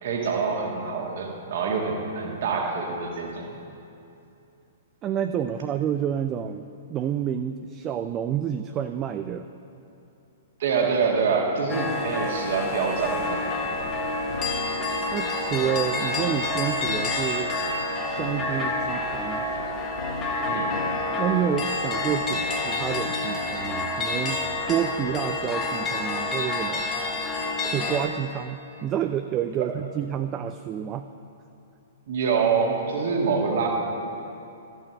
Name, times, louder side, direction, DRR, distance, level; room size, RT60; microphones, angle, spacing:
voice 1, 0.0-3.6 10.6-13.7 20.4-20.8 29.6-29.7 32.1-33.7, right 5 dB, 50° right, 1 dB, 1.7 m, -26 dB
voice 2, 5.0-9.5 15.1-17.6 18.1-19.5 21.1-24.4 24.7-26.9 27.6-31.0, right 9 dB, 25° right, 9 dB, 0.4 m, -29 dB
sound 1, 11.7-28.1, left 2 dB, 20° left, 1.2 m, -28 dB
sound 2, 13.5-21.2, left 2 dB, 70° left, 1.2 m, -40 dB
13.0 x 6.3 x 7.3 m, 2.7 s
figure-of-eight pair, 110°, 0 cm